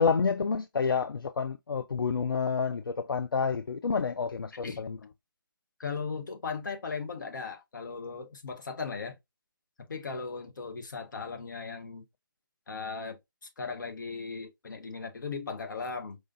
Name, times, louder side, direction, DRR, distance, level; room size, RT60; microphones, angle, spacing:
voice 1, 0.0-5.0, left 5 dB, 80° left, 0.4 m, -29 dB
voice 2, 4.5-4.8 5.8-9.2 9.8-12.0 12.7-13.2 13.6-16.2, left 5 dB, 60° left, 1.2 m, -37 dB
4.8 x 2.7 x 2.5 m
figure-of-eight pair, 150°, 12 cm